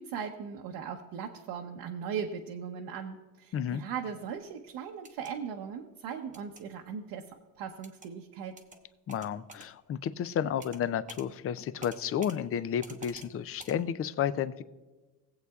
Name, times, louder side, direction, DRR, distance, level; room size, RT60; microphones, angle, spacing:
voice 1, 0.0-8.6, right 7 dB, 65° right, 1 dB, 0.9 m, -38 dB
sound 1, 4.9-5.3 6.3-6.6 7.8-8.1 8.6-8.8 9.1-9.7 10.6-10.8 11.1-11.3 11.8-12.4 12.8-13.3 13.6-13.8, right 3 dB, 15° right, 1.0 m, -48 dB
voice 2, 9.1-14.6, left 9 dB, 35° left, 14 dB, 0.4 m, -32 dB
19.5 x 8.0 x 2.4 m, 1.2 s
cardioid pair, 130°, 45 cm